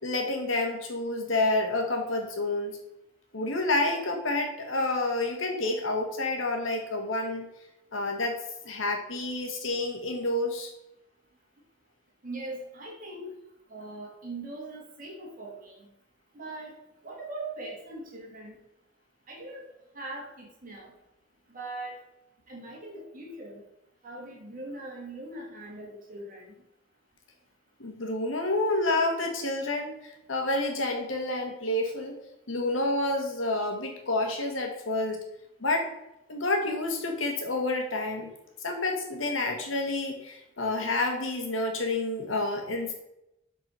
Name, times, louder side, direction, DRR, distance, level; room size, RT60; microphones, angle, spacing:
voice 1, 0.0-2.8 3.3-7.5 7.9-8.4 8.6-10.7 27.8-29.9 30.3-32.1 32.5-35.2 35.6-35.9 36.3-38.3 38.6-42.9, left 2 dB, 75° left, 3 dB, 1.7 m, -29 dB
voice 2, 12.2-13.4 13.7-15.9 16.3-16.7 17.0-18.6 19.3-19.7 19.9-20.9 21.5-22.0 22.5-23.6 24.0-26.5, right 2 dB, 45° right, -2 dB, 2.1 m, -40 dB
7.4 x 4.6 x 5.6 m, 0.86 s
head